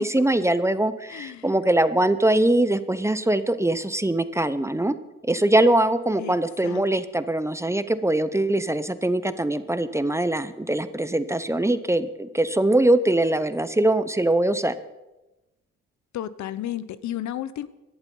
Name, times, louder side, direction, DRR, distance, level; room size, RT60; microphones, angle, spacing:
voice 1, 0.0-4.9 5.2-14.7, right 1 dB, 10° right, 13 dB, 0.7 m, -22 dB
voice 2, 1.1-1.4 6.2-6.4 6.6-6.8 16.1-17.7, left 11 dB, 70° left, 16 dB, 0.8 m, -32 dB
17.0 x 11.5 x 5.5 m, 1.0 s
cardioid pair, 90°, 30 cm